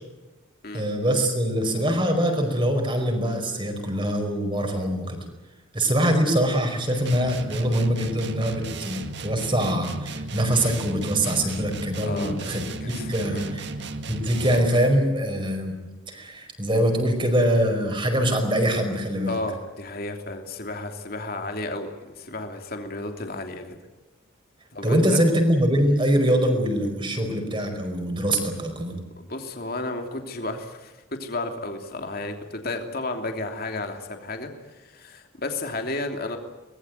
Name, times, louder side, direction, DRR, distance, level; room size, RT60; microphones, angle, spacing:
voice 1, 0.7-5.2 5.7-13.7 14.1-15.7 16.1-19.4 24.8-29.0, equal, 25° right, 4 dB, 5.0 m, -23 dB
sound 1, 7.1-14.8, right 2 dB, 60° right, 2.0 m, -35 dB
voice 2, 12.0-12.5 12.8-13.5 19.2-23.8 24.7-25.2 29.2-36.4, left 2 dB, 50° left, 4 dB, 3.0 m, -33 dB
24.0 x 20.5 x 9.3 m, 1.1 s
head